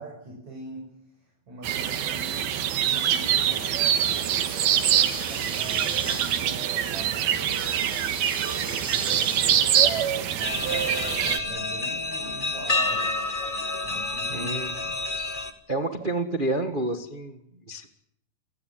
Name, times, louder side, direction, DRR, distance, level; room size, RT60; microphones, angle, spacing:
voice 1, 0.0-4.5 5.3-7.4 8.7-13.2 13.8-14.5 15.0-15.1, right 2 dB, 50° right, 0 dB, 8.2 m, -42 dB
sound 1, 1.6-11.4, right 10 dB, 80° right, 3.5 m, -24 dB
Breathing, 4.0-6.4 7.4-9.5, right 1 dB, 5° right, 1.3 m, -39 dB
sound 2, 10.4-15.5, left 3 dB, 30° left, 0.9 m, -29 dB
voice 2, 14.3-14.7 15.7-17.4 17.7-17.9, right 2 dB, 65° right, 7 dB, 0.5 m, -29 dB
29.5 x 19.5 x 7.7 m, 0.74 s
omnidirectional pair, 4.2 m